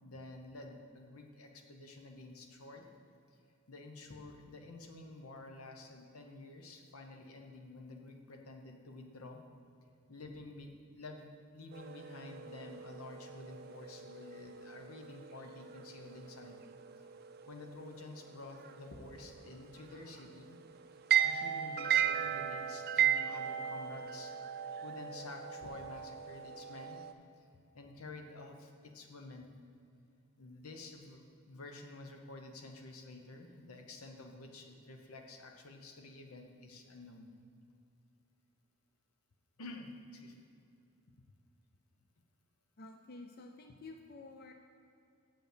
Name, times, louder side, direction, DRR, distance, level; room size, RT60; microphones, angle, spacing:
voice 1, 0.0-2.9 3.7-9.4 10.1-11.3 11.5-16.6 17.5-20.6 21.2-24.3 24.8-27.0 27.7-29.5 30.4-37.4 39.6-40.5, left 2 dB, 85° left, 3 dB, 0.9 m, -50 dB
sound 1, 11.7-27.1, right 9 dB, 45° right, 0.4 m, -37 dB
voice 2, 42.8-44.5, left 3 dB, 45° left, 4 dB, 0.4 m, -50 dB
7.7 x 5.4 x 6.7 m, 2.5 s
head